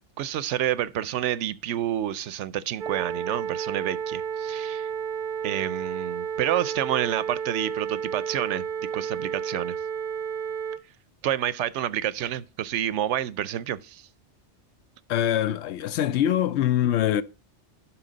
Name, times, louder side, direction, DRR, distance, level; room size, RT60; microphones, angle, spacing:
voice 1, 0.2-4.9 5.4-8.6 8.9-9.8 11.2-14.1, right 11 dB, 85° right, 0.9 m, -29 dB
sound 1, 2.8-10.8, right 7 dB, 55° right, 0.7 m, -32 dB
voice 2, 15.1-17.2, left 11 dB, 75° left, 0.8 m, -23 dB
11.5 x 4.6 x 3.9 m
omnidirectional pair, 1.2 m